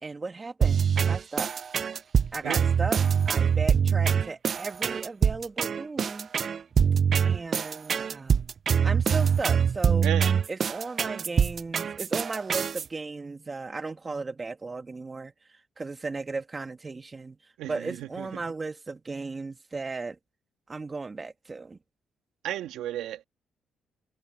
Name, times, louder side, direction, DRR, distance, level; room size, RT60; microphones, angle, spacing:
voice 1, 0.0-1.5 2.3-3.0 3.3-6.3 7.2-8.5 8.8-10.1 10.5-15.3 15.8-17.4 17.7-20.2 20.7-21.8, right 3 dB, 25° right, 2.3 m, -36 dB
sound 1, 0.6-12.8, right 7 dB, 50° right, 0.4 m, -24 dB
voice 2, 17.6-18.4 22.4-23.2, right 12 dB, 85° right, 2.0 m, -34 dB
cardioid pair, 90°, 0 cm